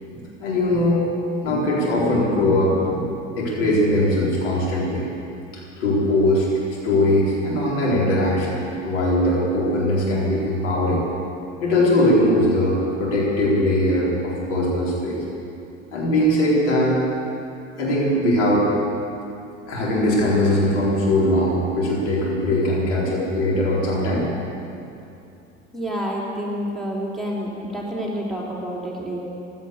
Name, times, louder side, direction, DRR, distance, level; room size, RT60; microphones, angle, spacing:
voice 1, 0.4-1.0 1.4-3.1 3.4-5.1 5.8-11.0 11.6-15.2 15.9-17.0 17.8-18.7 19.7-24.3, left 1 dB, 65° left, -5 dB, 4.5 m, -20 dB
voice 2, 25.7-29.2, equal, ahead, -4 dB, 3.0 m, -28 dB
15.5 x 12.5 x 6.9 m, 2.7 s
figure-of-eight pair, 70°, 37 cm